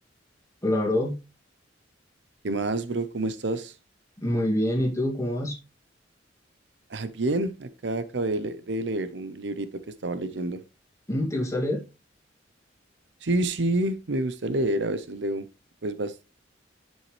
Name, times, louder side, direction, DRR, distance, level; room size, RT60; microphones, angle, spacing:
voice 1, 0.6-1.2 4.2-5.6 11.1-11.8, left 1 dB, 15° left, 2.4 m, -25 dB
voice 2, 2.4-3.7 6.9-9.7 10.0-10.6 13.2-15.5 15.8-16.2, right 2 dB, 65° right, 0.8 m, -28 dB
10.5 x 5.5 x 3.2 m
head